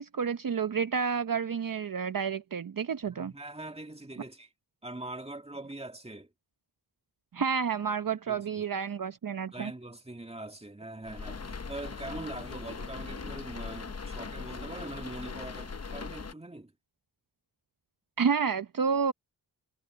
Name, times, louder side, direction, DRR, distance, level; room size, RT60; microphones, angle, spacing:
voice 1, 0.0-3.3 7.3-9.7 18.2-19.1, right 6 dB, 55° right, 0.8 m, -30 dB
voice 2, 3.1-4.5 4.8-6.3 8.3-8.7 9.5-16.7, right 2 dB, 15° right, 2.1 m, -42 dB
sound 1, 11.0-16.3, left 5 dB, 40° left, 0.9 m, -40 dB
cardioid pair, 50°, 41 cm